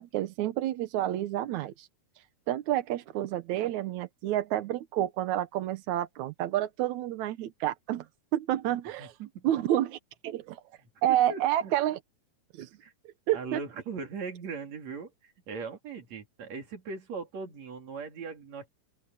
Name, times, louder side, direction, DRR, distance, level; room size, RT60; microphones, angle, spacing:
voice 1, 0.0-1.9 2.5-8.1 8.3-9.1 9.4-10.0 10.2-10.6 11.0-12.0 12.6-12.7 13.3-13.6, right 13 dB, 70° right, 1.9 m, -29 dB
voice 2, 9.0-9.5 10.8-11.7 12.8-12.9 13.3-18.7, right 5 dB, 50° right, 4.0 m, -39 dB
open air
omnidirectional pair, 4.1 m